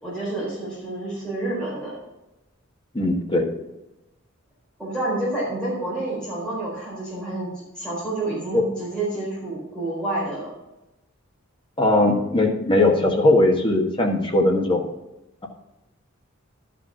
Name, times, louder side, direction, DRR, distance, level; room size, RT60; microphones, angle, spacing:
voice 1, 0.0-1.9 4.8-7.5 7.7-10.5, right 2 dB, 5° left, -8 dB, 4.2 m, -29 dB
voice 2, 2.9-3.5 8.5-8.7 11.8-14.9, left 2 dB, 25° left, 1 dB, 1.5 m, -19 dB
12.0 x 5.2 x 5.9 m, 0.96 s
head